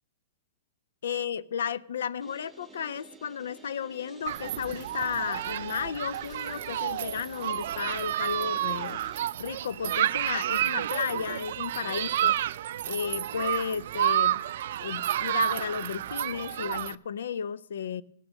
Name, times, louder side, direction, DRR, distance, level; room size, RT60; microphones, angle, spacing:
voice 1, 1.0-9.0 9.4-12.4 12.9-14.4 14.8-18.0, left 7 dB, 80° left, 19 dB, 0.5 m, -33 dB
sound 1, 2.2-9.3, right 2 dB, 5° right, 0.8 m, -51 dB
Human group actions, 4.3-16.9, right 12 dB, 60° right, 0.3 m, -30 dB
16.5 x 6.3 x 6.2 m, 0.75 s
hypercardioid pair, 155°, 0 cm